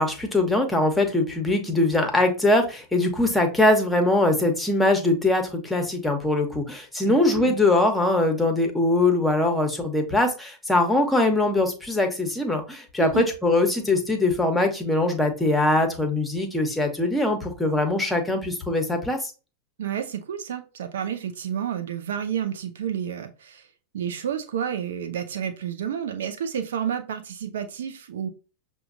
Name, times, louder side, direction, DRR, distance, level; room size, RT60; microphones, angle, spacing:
voice 1, 0.0-19.3, left 2 dB, 5° left, 1.0 m, -22 dB
voice 2, 7.0-7.5 13.0-13.3 19.8-23.6 23.9-28.3, right 8 dB, 60° right, 0.5 m, -30 dB
6.8 x 2.3 x 2.6 m
figure-of-eight pair, 90°, 0 cm